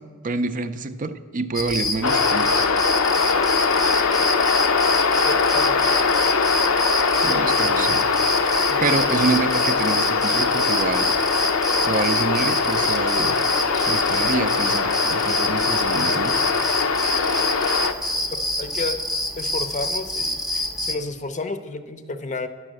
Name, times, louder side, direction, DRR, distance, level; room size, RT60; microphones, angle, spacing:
voice 1, 0.2-2.6 7.2-8.1 8.8-11.1 11.8-13.4 13.9-16.3, right 4 dB, 40° right, 10 dB, 0.4 m, -27 dB
sound 1, 1.5-20.9, left 1 dB, ahead, 0.7 m, -27 dB
sound 2, 2.0-17.9, left 5 dB, 80° left, 0.7 m, -21 dB
voice 2, 5.2-5.9 8.6-8.9 18.3-19.0 19.4-22.5, left 2 dB, 35° left, 10 dB, 0.6 m, -31 dB
9.5 x 6.2 x 7.5 m, 1.5 s
head